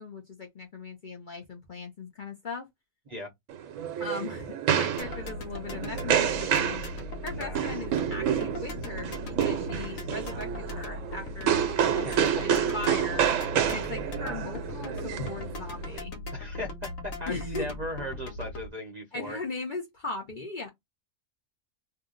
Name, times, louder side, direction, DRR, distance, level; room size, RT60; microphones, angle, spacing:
voice 1, 0.0-2.6 4.0-6.8 7.2-13.2 13.7-16.1 17.3-17.7 19.1-20.7, left 3 dB, 45° left, 0.7 m, -38 dB
sound 1, 3.5-16.0, right 9 dB, 75° right, 1.0 m, -29 dB
sound 2, 5.0-18.7, left 2 dB, 80° left, 1.2 m, -39 dB
voice 2, 7.3-7.7 11.9-13.0 16.3-16.7 17.0-19.4, equal, 40° right, 0.6 m, -37 dB
2.7 x 2.0 x 3.7 m
omnidirectional pair, 1.4 m